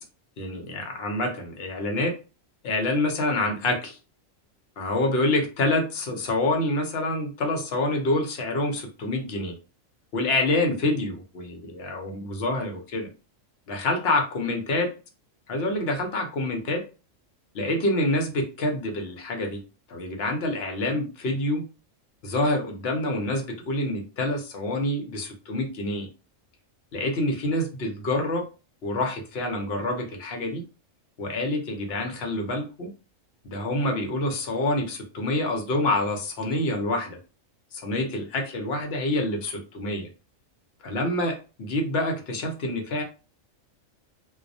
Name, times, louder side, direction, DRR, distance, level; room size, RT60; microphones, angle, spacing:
voice 1, 0.4-2.1 2.6-4.0 4.8-9.6 10.1-13.1 13.7-14.9 15.5-16.8 17.5-19.6 19.9-21.6 22.2-26.1 26.9-28.4 28.8-30.6 31.2-32.9 33.4-37.2 37.7-40.1 40.8-43.0, left 2 dB, 60° left, 3 dB, 0.8 m, -27 dB
2.3 x 2.1 x 2.6 m, 0.33 s
omnidirectional pair, 1.3 m